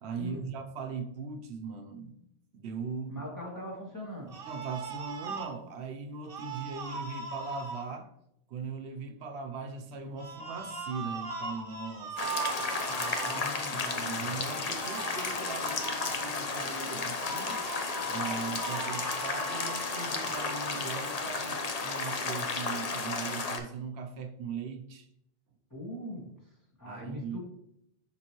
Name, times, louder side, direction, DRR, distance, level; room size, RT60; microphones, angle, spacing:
voice 1, 0.0-2.1 2.5-3.2 4.5-8.1 8.5-12.2 13.7-17.6 18.1-25.1 26.8-27.4, right 5 dB, 80° right, 5 dB, 0.9 m, -39 dB
voice 2, 3.1-4.3 12.8-14.4 25.7-26.2 26.8-27.4, left 1 dB, 20° left, -4 dB, 2.1 m, -41 dB
sound 1, 4.3-5.5 6.2-7.8 10.2-13.4 14.8-16.3 17.2-21.3, right 3 dB, 60° right, 1.1 m, -39 dB
sound 2, 12.2-23.6, left 4 dB, 40° left, 0.7 m, -33 dB
10.5 x 3.7 x 3.0 m, 0.80 s
omnidirectional pair, 1.1 m